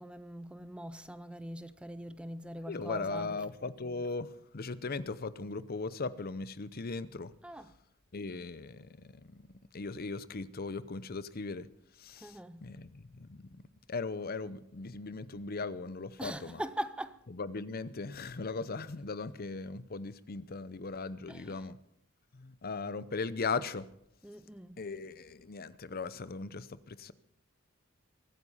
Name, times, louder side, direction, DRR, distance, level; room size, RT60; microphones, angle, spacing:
voice 1, 0.0-3.4 7.4-7.8 12.2-12.7 16.2-17.3 21.3-21.7 24.2-24.8, right 1 dB, 5° right, 0.5 m, -42 dB
voice 2, 2.7-7.3 8.1-9.4 9.7-11.7 12.0-12.3 12.6-13.6 13.9-16.6 17.4-21.8 22.3-23.9 24.8-27.1, left 4 dB, 45° left, 0.7 m, -38 dB
23.0 x 9.6 x 5.6 m
head